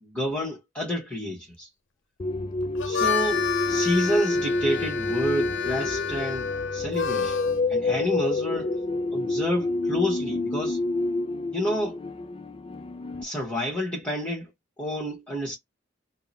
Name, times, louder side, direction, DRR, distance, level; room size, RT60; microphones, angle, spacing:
voice 1, 0.0-1.7 2.8-7.4 7.7-8.7 9.1-10.8 11.5-12.0 13.2-14.5 14.8-15.6, equal, 5° left, 1.1 m, -29 dB
sound 1, 2.2-13.2, left 2 dB, 30° left, 0.4 m, -28 dB
Harmonica, 2.6-7.6, left 7 dB, 85° left, 0.6 m, -30 dB
3.7 x 2.0 x 4.1 m
head